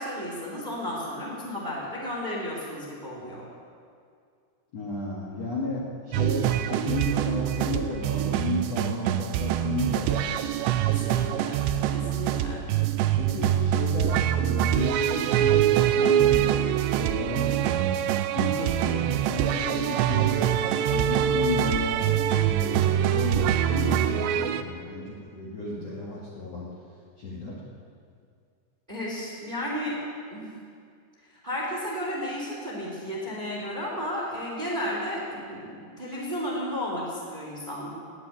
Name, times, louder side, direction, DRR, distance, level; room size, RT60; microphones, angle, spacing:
voice 1, 0.0-3.4 10.9-11.6 11.9-12.7 28.9-30.0 30.3-30.5 31.4-37.9, equal, 10° right, -4 dB, 2.6 m, -33 dB
voice 2, 4.7-10.4 13.2-17.8 18.3-20.5 20.9-22.1 22.4-26.7 27.2-27.6, left 2 dB, 45° left, -5 dB, 2.3 m, -33 dB
sound 1, 6.1-24.6, right 10 dB, 85° right, 2.8 m, -24 dB
19.5 x 7.7 x 9.2 m, 2.2 s
omnidirectional pair, 5.2 m